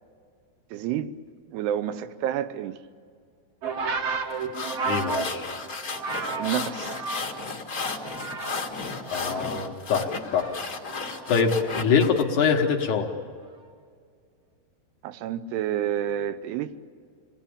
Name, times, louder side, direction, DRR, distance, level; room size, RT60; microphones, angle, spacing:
voice 1, 0.7-1.1 1.5-2.8 6.4-7.1 15.0-16.7, right 10 dB, 75° right, 2.7 m, -29 dB
sound 1, 3.6-7.5 7.8-8.7 9.0-11.7 12.6-12.9, right 4 dB, 55° right, 1.9 m, -33 dB
sound 2, 4.3-12.2, left 4 dB, 40° left, 1.2 m, -34 dB
voice 2, 4.9-5.5 9.1-10.5 11.3-13.1, left 6 dB, 65° left, 2.1 m, -24 dB
27.5 x 19.5 x 8.7 m
omnidirectional pair, 5.0 m